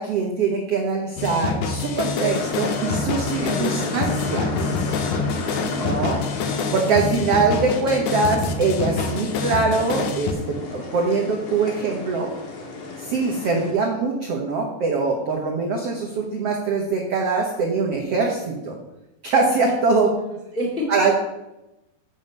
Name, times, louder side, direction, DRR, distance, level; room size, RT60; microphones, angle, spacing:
voice 1, 0.0-4.5 5.8-6.2 6.7-12.3 13.0-18.8 19.2-20.1 20.9-21.1, right 4 dB, 80° right, 0 dB, 1.3 m, -23 dB
sound 1, 1.2-10.3, left 5 dB, 75° left, 1.8 m, -26 dB
sound 2, 2.3-13.7, left 3 dB, 55° left, 2.8 m, -33 dB
voice 2, 3.3-4.2 4.5-5.4 13.3-13.7 20.2-20.3 20.5-20.9, left 1 dB, 20° left, -3 dB, 1.5 m, -31 dB
7.9 x 7.0 x 5.4 m, 0.93 s
omnidirectional pair, 4.5 m